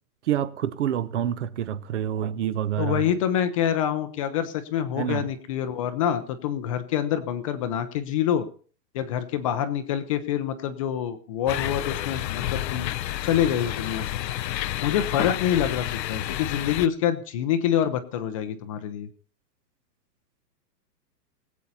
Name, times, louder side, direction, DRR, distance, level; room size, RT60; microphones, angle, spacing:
voice 1, 0.3-3.1 5.0-5.3, right 10 dB, 45° right, 0.8 m, -27 dB
voice 2, 2.8-8.4 8.9-12.9 13.2-14.0 14.8-19.1, left 10 dB, 20° left, 0.6 m, -26 dB
sound 1, 11.5-16.9, left 13 dB, 85° left, 0.7 m, -30 dB
21.0 x 8.3 x 4.2 m
hypercardioid pair, 155°, 49 cm